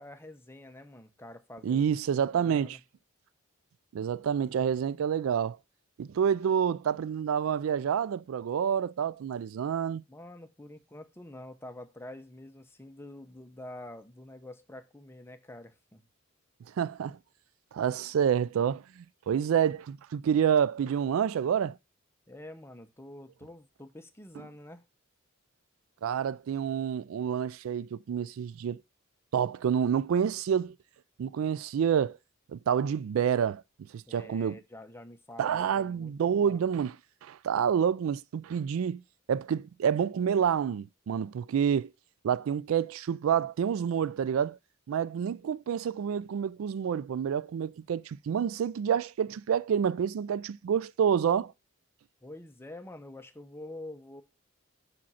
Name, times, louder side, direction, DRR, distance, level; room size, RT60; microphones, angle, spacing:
voice 1, 0.0-1.8 2.1-2.8 10.1-16.1 22.3-24.8 34.1-36.6 52.2-54.2, left 1 dB, 10° left, 0.7 m, -47 dB
voice 2, 1.6-2.8 3.9-5.6 6.0-10.0 16.7-17.2 17.7-21.8 26.0-28.8 29.3-30.8 31.2-32.2 32.5-33.6 33.9-34.6 35.4-37.0 37.2-39.0 39.3-41.9 42.2-44.6 44.9-51.5, right 8 dB, 80° right, 0.3 m, -28 dB
6.0 x 5.1 x 5.5 m
head